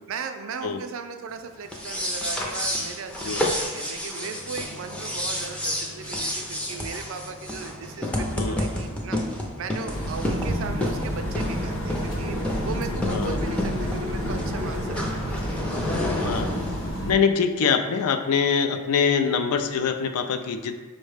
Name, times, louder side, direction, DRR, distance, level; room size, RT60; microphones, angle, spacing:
voice 1, 0.1-9.2 9.6-12.4 12.6-15.6, right 5 dB, 60° right, 7 dB, 0.4 m, -37 dB
sound 1, 1.6-16.9, left 1 dB, 5° left, 0.4 m, -30 dB
sound 2, 9.9-17.1, equal, 55° left, 0.7 m, -30 dB
voice 2, 16.2-16.5 17.1-20.7, left 6 dB, 75° left, 8 dB, 0.4 m, -24 dB
5.1 x 2.1 x 4.8 m, 1.4 s
head